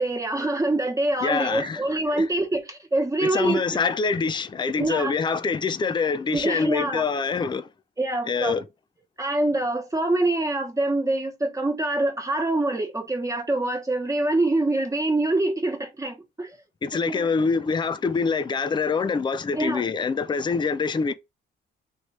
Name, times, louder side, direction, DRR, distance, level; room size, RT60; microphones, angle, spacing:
voice 1, 0.0-3.8 4.8-5.2 6.3-7.0 8.0-8.6 9.2-16.6 17.1-17.3 19.5-19.9, right 2 dB, 15° right, 1.3 m, -25 dB
voice 2, 1.2-1.8 2.1-2.3 3.2-7.7 8.3-8.6 16.8-21.1, left 5 dB, 25° left, 0.5 m, -25 dB
3.2 x 3.2 x 4.1 m
cardioid pair, 90°, 20 cm